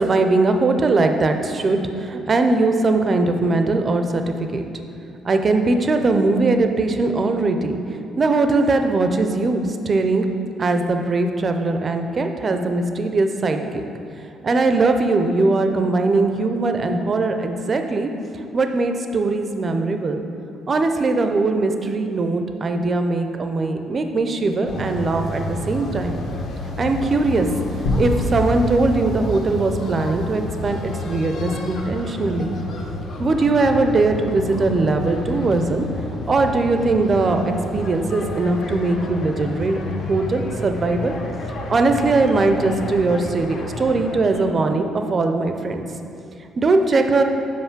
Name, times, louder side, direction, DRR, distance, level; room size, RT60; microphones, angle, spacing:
voice 1, 0.0-4.7 5.2-7.8 8.2-10.3 10.6-13.8 14.4-20.2 20.7-26.2 26.8-27.5 28.0-32.5 33.2-35.9 36.3-39.8 40.1-41.1 41.7-45.8 46.6-47.2, right 3 dB, 25° right, 6 dB, 0.4 m, -20 dB
sound 1, 24.7-44.5, left 2 dB, 50° left, 0.7 m, -30 dB
sound 2, 27.8-30.4, left 2 dB, 80° left, 1.2 m, -26 dB
5.6 x 4.9 x 5.9 m, 2.7 s
cardioid pair, 170°, 0 cm